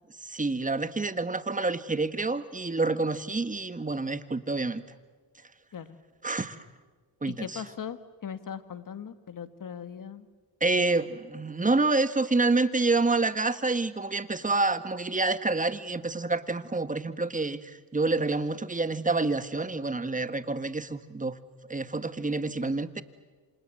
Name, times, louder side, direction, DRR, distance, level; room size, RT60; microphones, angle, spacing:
voice 1, 0.2-4.8 6.2-6.6 7.2-7.6 10.6-21.4 21.7-23.0, right 3 dB, 15° right, 11 dB, 1.7 m, -28 dB
voice 2, 7.3-10.3, left 8 dB, 45° left, 11 dB, 2.0 m, -39 dB
28.0 x 26.5 x 7.8 m, 1.4 s
supercardioid pair, 70°, 47 cm